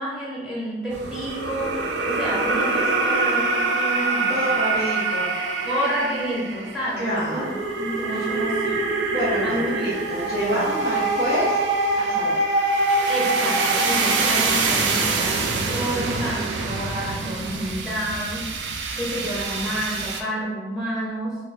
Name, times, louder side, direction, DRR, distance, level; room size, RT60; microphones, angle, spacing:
voice 1, 0.0-4.4 5.6-7.5 7.8-8.8 9.4-9.7 10.5-10.7 13.1-21.4, equal, 5° right, -7 dB, 0.8 m, -29 dB
sound 1, 0.9-20.2, right 3 dB, 90° right, 0.4 m, -24 dB
voice 2, 4.3-5.3 7.0-7.6 8.1-8.3 9.1-11.6 12.0-12.3, equal, 60° right, -9 dB, 0.8 m, -27 dB
2.7 x 2.5 x 3.2 m, 1.3 s
head